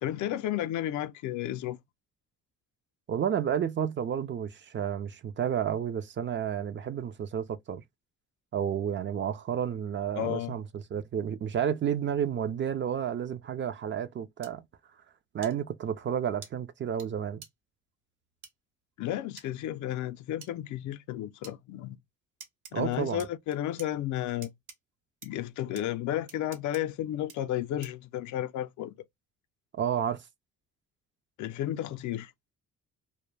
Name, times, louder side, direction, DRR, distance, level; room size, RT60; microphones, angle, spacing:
voice 1, 0.0-1.8 10.1-10.5 19.0-22.0 22.7-24.5 25.2-28.9 31.4-32.3, left 12 dB, 75° left, 0.4 m, -32 dB
voice 2, 3.1-7.8 8.5-14.6 15.3-17.4 22.7-23.3 29.7-30.3, right 8 dB, 40° right, 0.4 m, -31 dB
sound 1, 14.4-14.5 15.4-15.5 16.4-16.5 17.0-17.1 17.4-17.5 18.4-18.5 19.4-19.5 20.4-20.5 21.4-21.6 22.4-22.7 23.2-23.9 24.4-24.8 25.2-25.3 25.8-25.9 26.3-26.8 27.3-27.4 27.8-28.0, right 6 dB, 85° right, 0.7 m, -47 dB
2.1 x 2.1 x 3.1 m
cardioid pair, 90°, 30 cm